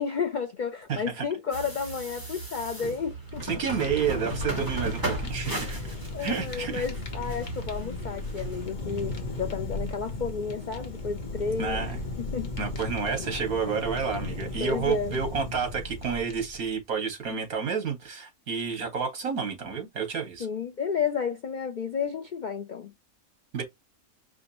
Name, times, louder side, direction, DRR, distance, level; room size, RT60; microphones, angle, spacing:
voice 1, 0.0-3.4 5.5-5.9 6.1-11.9 12.2-12.5 14.6-15.2 20.4-22.9, left 6 dB, 65° left, 0.4 m, -32 dB
voice 2, 0.9-1.3 3.4-5.8 6.2-6.8 11.6-12.0 12.6-20.5 23.5-23.6, right 6 dB, 75° right, 2.2 m, -30 dB
sound 1, 1.5-8.7, right 2 dB, 15° right, 1.8 m, -37 dB
Fire, 3.1-16.7, left 2 dB, 35° left, 1.1 m, -36 dB
4.9 x 3.4 x 2.9 m
omnidirectional pair, 1.5 m